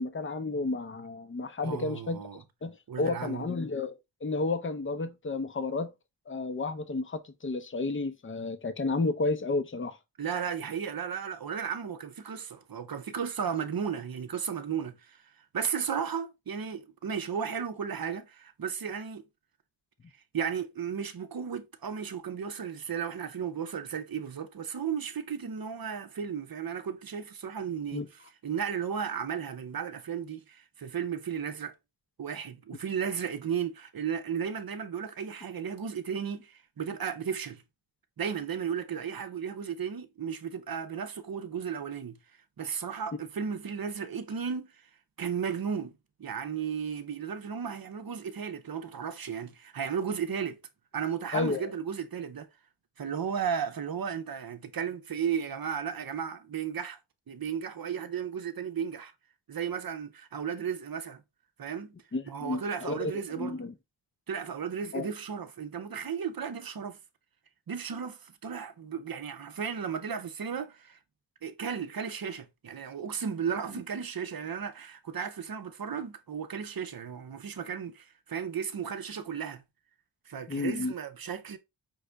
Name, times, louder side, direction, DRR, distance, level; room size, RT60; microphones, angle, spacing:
voice 1, 0.0-2.2 2.6-5.9 6.3-10.0 27.9-28.1 51.3-51.7 62.1-63.1 63.4-63.7 64.9-65.1 80.5-80.9, left 3 dB, 25° left, 0.7 m, -32 dB
voice 2, 1.6-2.4 2.9-3.5 10.2-15.2 15.5-19.2 20.3-28.0 28.4-31.7 32.2-37.6 38.2-42.2 42.6-44.8 45.2-45.9 46.2-50.6 50.9-52.5 53.0-57.0 57.3-59.1 59.5-61.2 61.6-61.9 62.3-63.5 64.3-67.0 67.7-71.0 71.4-79.6 80.3-81.6, right 7 dB, 50° right, 0.7 m, -34 dB
5.3 x 2.6 x 3.3 m
wide cardioid pair, 70°, 47 cm